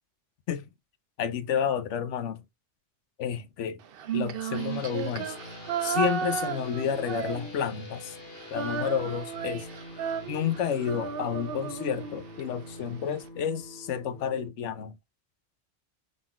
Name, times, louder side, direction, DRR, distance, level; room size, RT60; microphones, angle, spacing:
voice 1, 1.2-2.4 3.2-3.8 4.1-5.3 5.8-8.2 8.5-9.7 10.3-15.0, left 8 dB, 85° left, 1.0 m, -30 dB
Female singing, 3.9-7.9 8.1-12.4, right 7 dB, 60° right, 0.7 m, -33 dB
sound 1, 4.5-14.5, left 1 dB, 55° left, 1.6 m, -45 dB
3.9 x 3.7 x 2.2 m
omnidirectional pair, 1.2 m